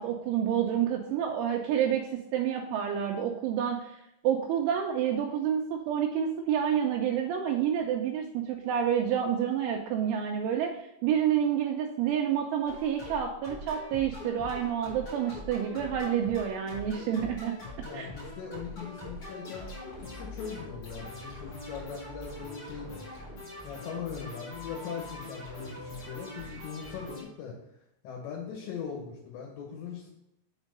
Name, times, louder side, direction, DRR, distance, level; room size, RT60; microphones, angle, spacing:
voice 1, 0.0-3.8 4.2-17.5 17.9-18.1, right 9 dB, 80° right, 1 dB, 2.9 m, -29 dB
sound 1, 12.7-27.2, left 1 dB, 55° left, 1.0 m, -43 dB
voice 2, 17.8-19.7 20.0-23.0 23.6-27.6 28.0-30.1, left 6 dB, 70° left, -1 dB, 3.1 m, -40 dB
7.2 x 4.4 x 5.3 m, 0.81 s
omnidirectional pair, 5.8 m